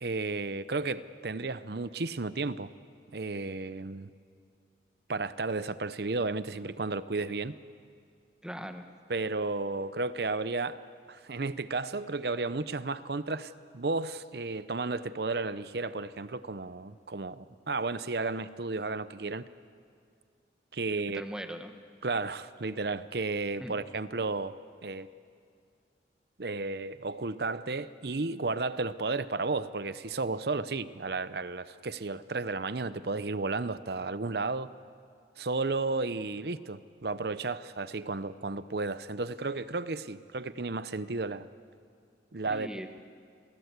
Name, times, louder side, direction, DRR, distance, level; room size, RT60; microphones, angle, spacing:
voice 1, 0.0-2.7 3.1-4.1 5.1-7.5 9.1-10.8 11.1-19.4 20.7-21.2 22.0-24.6 24.8-25.1 26.4-34.7 35.4-41.5 42.3-42.7, right 3 dB, 60° right, 14 dB, 0.7 m, -33 dB
voice 2, 8.4-8.9 21.1-21.7 23.6-23.7 42.5-43.0, equal, 5° right, 6 dB, 1.2 m, -40 dB
28.5 x 19.5 x 8.2 m, 2.2 s
head